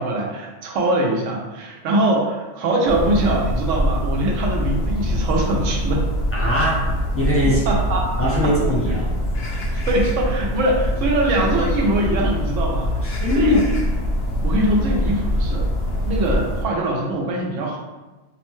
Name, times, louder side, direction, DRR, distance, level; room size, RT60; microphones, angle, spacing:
voice 1, 0.0-6.1 7.4-8.1 8.4-8.5 9.9-13.6 14.4-15.7 16.1-17.8, right 1 dB, 85° right, -1 dB, 1.0 m, -22 dB
sound 1, 2.9-16.7, equal, 65° left, 0.7 m, -23 dB
voice 2, 6.3-6.8 7.1-7.8 8.2-9.1 13.0-13.6, left 1 dB, 15° left, -7 dB, 0.6 m, -21 dB
2.7 x 2.1 x 3.0 m, 1.2 s
omnidirectional pair, 1.3 m